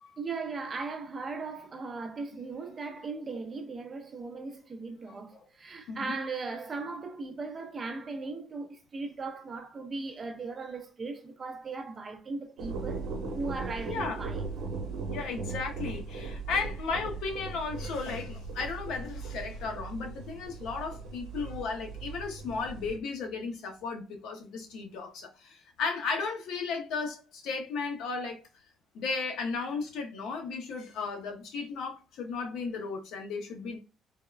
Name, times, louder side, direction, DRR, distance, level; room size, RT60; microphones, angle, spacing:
voice 1, 0.2-13.0 13.3-14.4, right 3 dB, 30° right, 0.5 m, -38 dB
sound 1, 12.6-23.0, right 4 dB, 85° right, 0.8 m, -38 dB
voice 2, 13.9-14.2 15.1-28.4 28.9-33.8, left 4 dB, 75° left, 0.6 m, -35 dB
3.4 x 2.1 x 2.2 m
cardioid pair, 135°, 0 cm